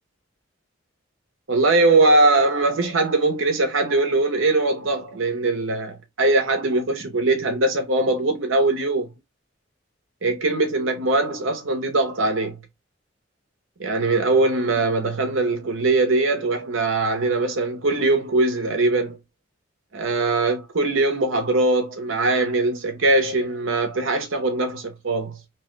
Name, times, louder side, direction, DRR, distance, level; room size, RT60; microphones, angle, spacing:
voice 1, 1.5-9.1 10.2-12.6 13.8-19.2 19.9-25.4, right 2 dB, 80° right, 0.9 m, -21 dB
3.1 x 2.2 x 3.1 m
head